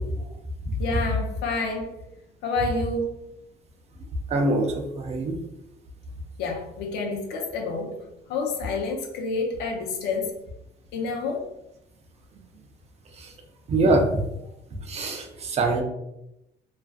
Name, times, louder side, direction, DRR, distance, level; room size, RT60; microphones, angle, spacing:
voice 1, 0.8-1.9 2.4-3.1 6.4-8.0 8.3-10.3 10.9-11.5, left 3 dB, 90° left, 1 dB, 0.6 m, -28 dB
voice 2, 4.3-5.3 13.7-14.0 14.9-15.8, right 2 dB, 40° right, 3 dB, 0.5 m, -23 dB
2.4 x 2.3 x 2.3 m, 0.87 s
cardioid pair, 110°, 17 cm